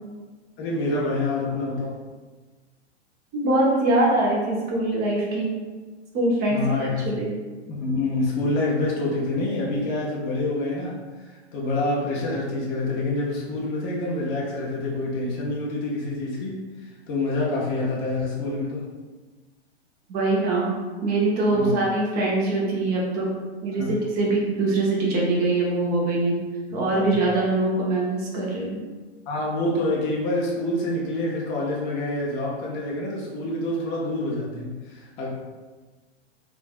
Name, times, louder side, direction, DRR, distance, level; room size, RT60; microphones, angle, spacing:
voice 1, 0.6-1.9 6.5-7.1 7.7-18.9 21.5-21.7 23.8-23.9 26.9-27.2 29.3-35.3, left 2 dB, 25° left, -4 dB, 0.4 m, -27 dB
voice 2, 3.3-5.5 6.1-7.3 20.1-20.7 21.0-23.3 23.6-26.4 26.7-28.8, right 2 dB, 25° right, -3 dB, 0.7 m, -23 dB
3.3 x 2.3 x 2.4 m, 1.3 s
hypercardioid pair, 120°, 35 cm